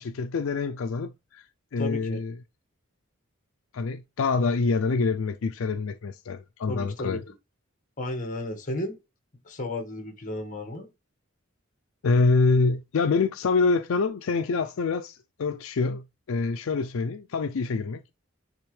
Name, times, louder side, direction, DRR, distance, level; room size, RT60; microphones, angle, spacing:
voice 1, 0.0-1.5 1.7-2.3 3.7-7.2 12.0-18.1, left 4 dB, 75° left, 0.4 m, -26 dB
voice 2, 1.8-2.2 6.7-7.2 8.0-9.0 9.4-10.9, left 1 dB, 40° left, 1.5 m, -33 dB
10.0 x 3.5 x 3.2 m
head